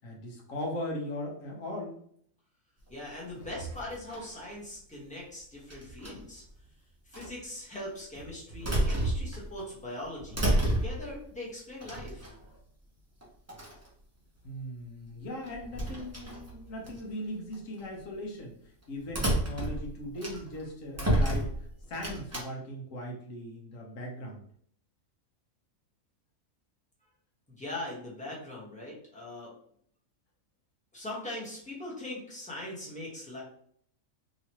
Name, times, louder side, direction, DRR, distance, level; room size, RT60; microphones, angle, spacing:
voice 1, 0.0-1.9 14.4-24.4, left 1 dB, 70° left, 0 dB, 1.3 m, -39 dB
voice 2, 2.9-6.4 7.1-12.3 27.5-29.5 30.9-33.4, left 1 dB, 5° left, -5 dB, 1.0 m, -41 dB
sound 1, 3.4-4.4 5.7-6.4 7.1-7.3 8.1-9.6 10.0-11.2 11.8-12.6 13.2-13.3 13.5-13.9 15.4-17.0 17.5-17.8 19.1-20.6 20.9-22.4, right 1 dB, 20° right, 0.4 m, -31 dB
3.1 x 2.9 x 2.9 m, 0.63 s
omnidirectional pair, 1.5 m